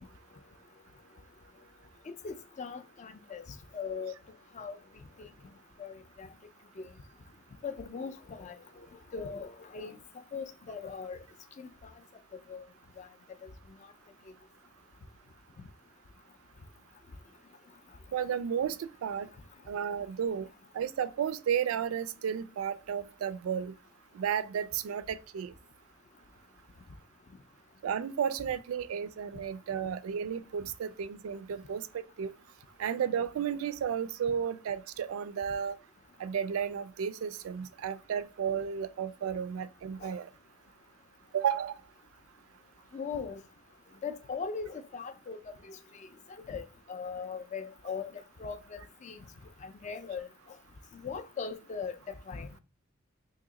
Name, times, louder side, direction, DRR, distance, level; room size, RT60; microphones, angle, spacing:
voice 1, 2.1-4.1 4.5-4.8 5.2-5.3 5.8-6.3 6.8-6.9 7.6-10.0 10.3-11.2 11.6-11.9 12.5-12.7 13.0-13.1 13.4-13.5 40.0-40.1 42.9-43.4 44.0-46.1 46.5-48.1 48.4-49.2 49.6-50.3 51.0-52.5, left 5 dB, 35° left, 0.3 m, -40 dB
voice 2, 18.1-19.3 19.7-20.5 20.7-23.7 24.1-25.5 27.8-32.3 32.8-35.8 36.2-40.3 41.3-41.7, right 8 dB, 80° right, 0.3 m, -33 dB
2.9 x 2.8 x 3.6 m
head